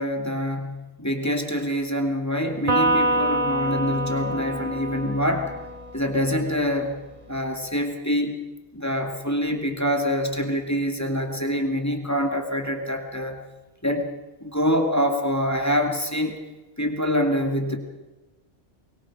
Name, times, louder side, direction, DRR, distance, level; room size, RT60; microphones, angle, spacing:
voice 1, 0.0-5.5 5.9-7.0 7.3-8.4 8.7-13.4 13.8-14.1 14.4-16.4 16.8-17.8, equal, 15° left, 3 dB, 2.3 m, -25 dB
Electric guitar, 2.7-6.2, right 1 dB, 45° right, 3.1 m, -25 dB
23.0 x 22.0 x 6.2 m, 1.1 s
omnidirectional pair, 1.2 m